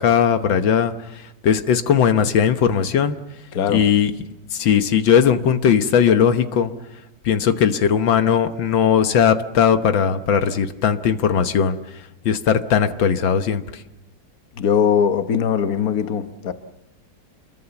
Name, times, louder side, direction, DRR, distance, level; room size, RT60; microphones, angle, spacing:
voice 1, 0.0-3.2 3.7-4.1 4.5-6.7 7.3-13.8, left 7 dB, 85° left, 1.9 m, -18 dB
voice 2, 3.5-3.9 14.5-16.5, left 7 dB, 55° left, 1.6 m, -20 dB
28.0 x 22.5 x 7.1 m
omnidirectional pair, 2.0 m